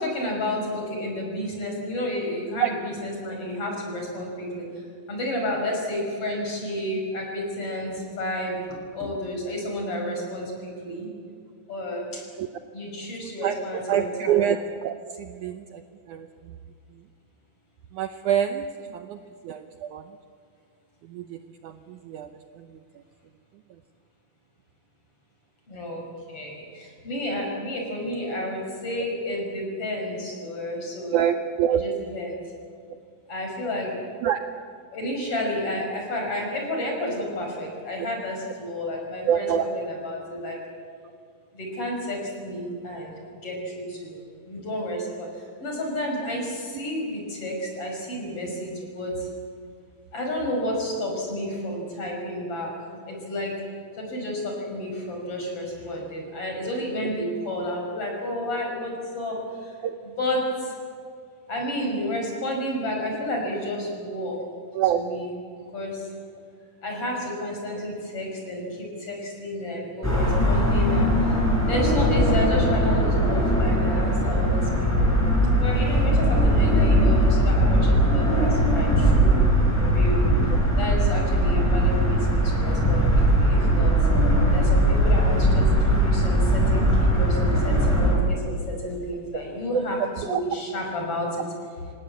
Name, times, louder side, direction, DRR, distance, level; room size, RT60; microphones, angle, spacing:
voice 1, 0.0-4.7 5.1-8.6 8.9-10.5 10.8-11.1 11.7-12.0 12.7-14.4 19.2-19.3 25.7-26.0 26.3-26.5 27.0-31.2 31.7-32.3 33.3-33.9 34.9-39.5 39.7-40.6 41.6-43.1 43.4-44.2 44.5-45.3 45.6-49.1 50.1-52.7 53.1-53.5 54.0-59.4 60.0-60.4 61.5-64.4 64.9-65.3 65.7-65.9 66.8-71.1 71.7-75.2 75.5-78.9 79.1-79.4 79.8-80.2 80.8-83.0 83.4-83.9 84.5-90.0 90.2-91.3, left 1 dB, 35° left, 0 dB, 6.5 m, -31 dB
voice 2, 13.2-16.6 17.9-18.7 18.9-20.1 21.0-22.8 31.1-31.8 34.2-34.4 39.3-39.7 59.8-60.0 64.7-65.0 89.7-89.8 90.3-90.4, right 9 dB, 85° right, 7 dB, 1.8 m, -26 dB
sound 1, 70.0-88.2, equal, 5° left, 6.2 m, -20 dB
26.5 x 18.5 x 8.4 m, 2.2 s
omnidirectional pair, 4.5 m